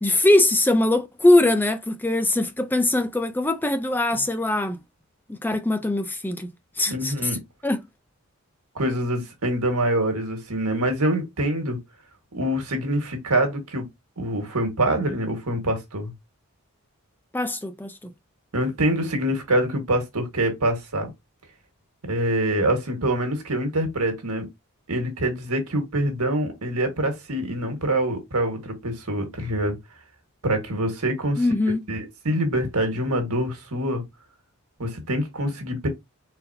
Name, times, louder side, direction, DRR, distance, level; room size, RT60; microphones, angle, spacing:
voice 1, 0.0-4.8 5.3-7.4 7.6-7.8 17.3-18.1 31.4-31.8, left 2 dB, 10° left, 0.5 m, -22 dB
voice 2, 6.9-7.4 8.7-11.8 12.3-13.8 14.2-16.1 18.5-21.1 22.1-24.5 24.9-29.7 30.4-31.4 31.9-34.0 34.8-35.9, right 1 dB, 90° right, 1.7 m, -25 dB
4.2 x 4.0 x 2.7 m
head